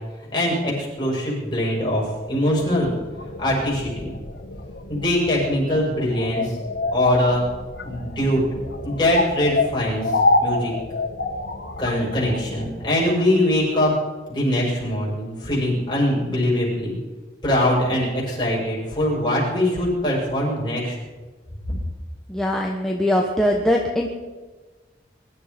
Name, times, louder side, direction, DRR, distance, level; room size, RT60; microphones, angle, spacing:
voice 1, 0.3-2.9 3.4-4.1 4.9-6.6 6.9-7.5 7.8-8.4 8.8-10.0 10.4-10.7 11.8-13.9 14.3-17.0 17.4-21.0, left 1 dB, 25° left, -4 dB, 6.5 m, -22 dB
sound 1, 2.3-12.7, left 2 dB, 75° left, 1.7 m, -28 dB
voice 2, 22.3-24.1, left 1 dB, 5° left, 0 dB, 1.2 m, -21 dB
22.0 x 12.0 x 5.2 m, 1.3 s
head